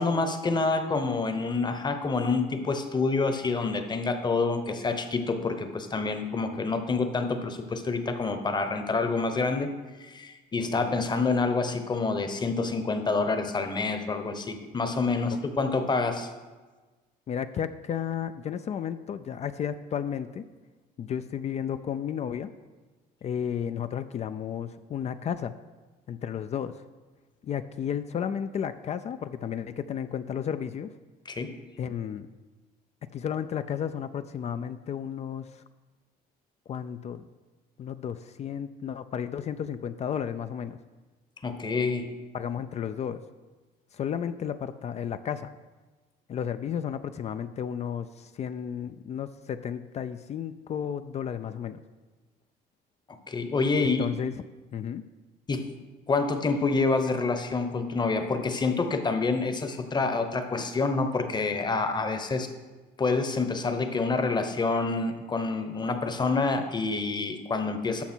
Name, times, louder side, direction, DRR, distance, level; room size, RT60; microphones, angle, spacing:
voice 1, 0.0-9.7 10.0-16.3 31.3-31.5 41.4-42.1 53.3-54.1 55.5-55.7 56.1-62.5 63.0-68.0, left 3 dB, 25° left, 8 dB, 0.9 m, -27 dB
voice 2, 10.7-11.0 17.3-20.4 21.0-22.5 23.2-25.5 26.1-26.8 27.4-31.0 31.8-32.3 33.1-35.6 36.7-37.3 37.8-40.8 42.3-43.2 43.9-45.5 46.3-51.8 53.8-54.3 54.7-55.1, left 8 dB, 40° left, 11 dB, 0.4 m, -33 dB
13.0 x 5.7 x 4.5 m, 1.3 s
cardioid pair, 110°, 17 cm